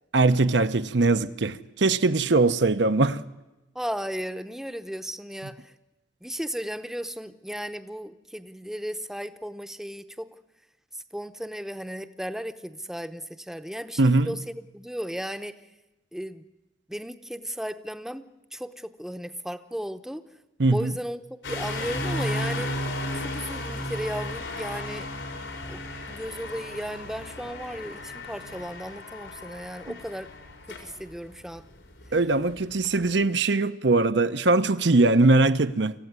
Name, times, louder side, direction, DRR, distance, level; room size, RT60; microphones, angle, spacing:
voice 1, 0.1-3.2 14.0-14.3 20.6-20.9 32.1-35.9, right 3 dB, 70° right, 0.8 m, -21 dB
voice 2, 3.7-5.7 6.2-10.3 11.1-15.5 16.1-16.4 16.9-18.2 18.5-20.2 20.7-21.2 21.5-22.7 23.1-25.1 25.7-25.8 26.1-30.3 30.7-31.7, equal, ahead, 0.8 m, -35 dB
sound 1, 21.4-33.2, left 1 dB, 90° left, 4.7 m, -34 dB
25.5 x 15.0 x 9.6 m
head